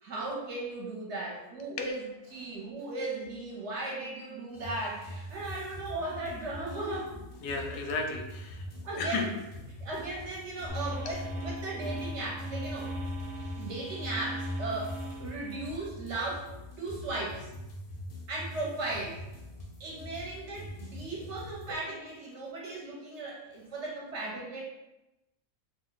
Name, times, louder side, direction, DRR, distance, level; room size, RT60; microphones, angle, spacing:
voice 1, 0.0-2.0 2.3-7.2 8.8-9.3 9.8-12.9 13.6-14.9 15.2-16.5 16.8-17.5 18.3-19.2 19.8-24.6, right 2 dB, 60° right, -3 dB, 1.0 m, -37 dB
sound 1, 4.5-21.7, left 1 dB, 55° left, 0.6 m, -44 dB
voice 2, 7.4-8.6 9.0-9.3 11.0-11.2 21.7-21.8, left 4 dB, 80° left, 2 dB, 1.0 m, -33 dB
sound 2, 10.7-15.8, equal, 75° right, 0.3 m, -38 dB
2.7 x 2.1 x 3.9 m, 0.97 s
omnidirectional pair, 1.5 m